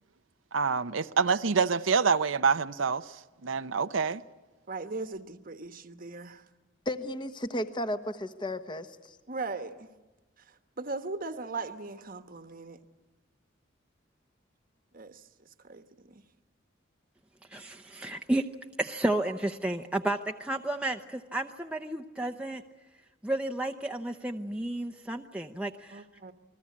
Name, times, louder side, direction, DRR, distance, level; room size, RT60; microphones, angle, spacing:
voice 1, 0.5-4.2, right 5 dB, 85° right, 0.8 m, -27 dB
voice 2, 4.7-6.4 9.3-9.9 10.8-12.8 14.9-15.2 15.6-16.2 25.9-26.3, right 3 dB, 45° right, 1.2 m, -38 dB
voice 3, 6.8-9.2, left 1 dB, 25° left, 1.2 m, -34 dB
voice 4, 17.5-18.4 18.8-22.6 23.2-26.0, right 1 dB, 5° right, 0.8 m, -32 dB
29.0 x 21.0 x 8.6 m
head